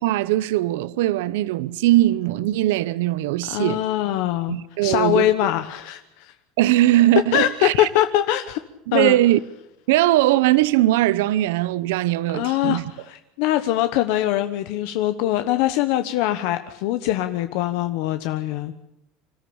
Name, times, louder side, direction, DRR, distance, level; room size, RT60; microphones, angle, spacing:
voice 1, 0.0-3.8 4.5-5.3 6.6-7.9 8.9-9.4 9.9-12.8, right 15 dB, 85° right, 0.7 m, -20 dB
voice 2, 3.5-4.6 4.8-6.3 7.3-8.6 8.9-9.2 12.3-18.7, left 13 dB, 60° left, 1.0 m, -23 dB
26.0 x 14.0 x 8.7 m
cardioid pair, 170°, 0 cm